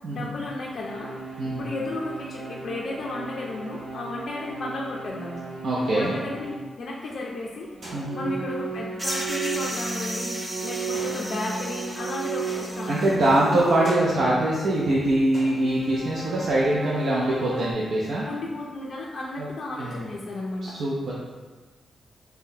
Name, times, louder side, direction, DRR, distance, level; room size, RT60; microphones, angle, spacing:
voice 1, 0.1-1.1 1.6-5.4 5.9-7.7 8.1-13.5 18.2-20.7, left 2 dB, 55° left, -4 dB, 0.4 m, -33 dB
sound 1, 0.8-6.7 7.7-14.6 15.5-17.7, right 5 dB, 85° right, 0.9 m, -35 dB
voice 2, 5.6-6.1 7.9-8.3 12.9-18.3 19.4-19.5 19.8-20.0 20.6-21.1, right 1 dB, 65° right, -6 dB, 0.5 m, -23 dB
sound 2, 6.0-6.5 7.8-8.5 9.5-10.1 10.9-11.7 12.5-13.1 13.8-14.5 15.3-16.0, equal, 45° right, 1.2 m, -44 dB
sound 3, 9.0-13.7, equal, 10° right, 0.5 m, -35 dB
5.6 x 2.1 x 2.7 m, 1.3 s
wide cardioid pair, 160°, 0 cm